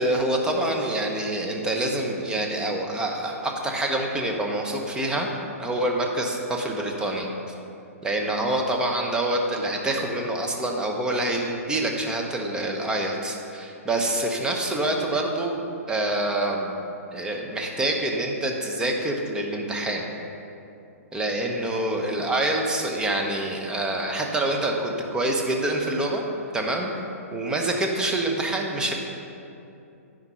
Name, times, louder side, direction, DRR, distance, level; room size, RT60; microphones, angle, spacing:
voice 1, 0.0-5.3 5.6-7.3 8.0-16.7 17.1-20.1 21.1-26.2 26.5-26.9 27.3-28.9, right 1 dB, 10° right, 1 dB, 1.0 m, -26 dB
9.5 x 5.2 x 5.7 m, 2.8 s
hypercardioid pair, 125°, 8 cm